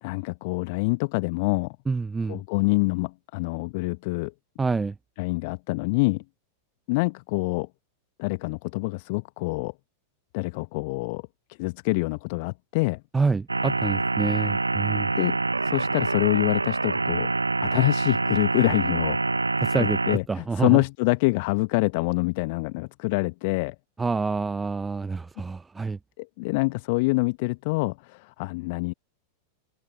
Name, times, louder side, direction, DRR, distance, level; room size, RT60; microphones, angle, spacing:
voice 1, 0.0-1.8 2.3-4.3 5.2-6.2 6.9-7.7 8.2-9.7 10.3-11.2 11.6-13.0 15.2-17.3 17.6-19.2 20.1-23.7 26.2-28.9, left 26 dB, 50° left, 1.1 m, -26 dB
voice 2, 1.9-2.4 4.6-4.9 13.1-15.1 19.6-20.8 24.0-26.0, right 4 dB, 10° right, 1.0 m, -27 dB
sound 1, 13.5-20.2, right 3 dB, 80° right, 1.0 m, -26 dB
open air
figure-of-eight pair, 90°, 0 cm